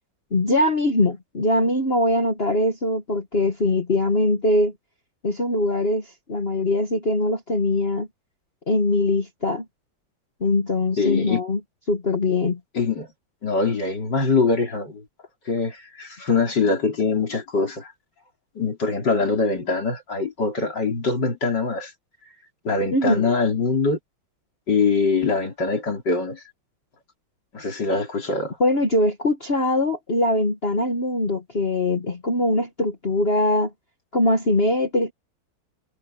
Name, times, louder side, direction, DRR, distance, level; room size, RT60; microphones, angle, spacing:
voice 1, 0.3-4.7 5.2-8.1 8.7-9.6 10.4-11.6 11.9-12.6 22.9-23.3 28.6-33.7 34.1-35.1, left 1 dB, 30° left, 1.6 m, -22 dB
voice 2, 11.0-11.4 12.7-13.1 13.4-15.0 15.5-17.9 18.6-21.9 22.6-24.0 24.7-26.4 27.5-28.6, left 4 dB, 60° left, 4.3 m, -23 dB
omnidirectional pair, 2.1 m